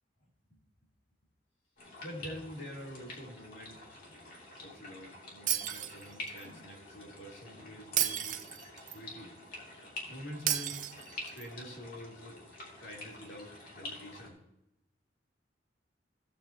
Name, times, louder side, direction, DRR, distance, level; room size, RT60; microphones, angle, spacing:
sound 1, 1.8-14.3, left 2 dB, 55° left, 2.8 m, -48 dB
voice 1, 2.0-3.8 4.6-8.5 8.9-9.3 10.1-10.8 11.2-12.4 12.8-14.4, equal, 75° left, -3 dB, 3.2 m, -46 dB
Shatter, 5.5-6.4 8.0-9.0 10.5-11.5, right 11 dB, 45° right, 0.6 m, -33 dB
16.0 x 7.4 x 2.9 m, 0.86 s
head